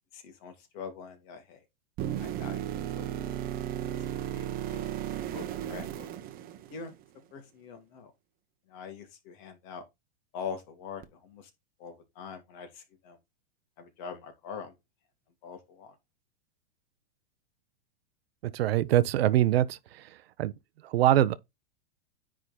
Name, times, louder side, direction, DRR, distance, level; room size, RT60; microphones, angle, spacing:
voice 1, 0.1-1.6 2.2-3.6 4.3-4.9 5.3-6.1 6.7-6.9 7.3-8.1 8.7-9.8 10.3-11.5 11.8-13.2 13.8-14.7 15.4-15.9, left 6 dB, 50° left, 2.3 m, -43 dB
sound 1, 2.0-7.0 11.0-11.1, right 11 dB, 30° right, 1.0 m, -35 dB
voice 2, 18.4-20.1 20.4-20.5 20.8-21.4, right 13 dB, 75° right, 0.8 m, -24 dB
9.9 x 3.9 x 4.2 m
supercardioid pair, 140°, 30 cm